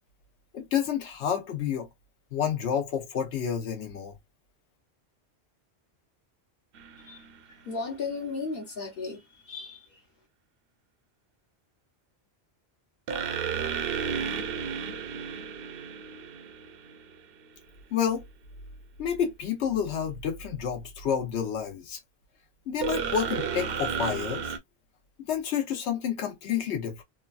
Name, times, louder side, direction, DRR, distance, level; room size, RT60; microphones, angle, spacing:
voice 1, 0.5-1.9 2.3-4.1 17.9-18.2 19.0-22.0 22.7-24.5 25.3-27.0, left 8 dB, 85° left, 1.0 m, -29 dB
sound 1, 6.8-7.4 13.1-17.2 22.8-24.6, right 7 dB, 65° right, 0.7 m, -33 dB
voice 2, 7.0-10.0, left 4 dB, 60° left, 1.0 m, -36 dB
3.2 x 2.2 x 2.3 m
omnidirectional pair, 1.1 m